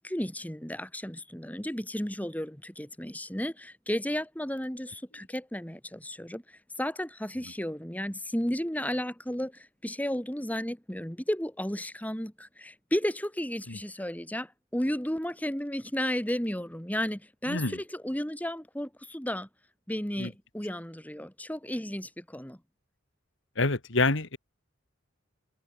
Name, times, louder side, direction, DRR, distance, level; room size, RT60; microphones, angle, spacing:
voice 1, 0.0-19.5 19.9-22.6, equal, 10° left, 3.3 m, -33 dB
voice 2, 23.6-24.4, left 3 dB, 65° left, 2.4 m, -27 dB
head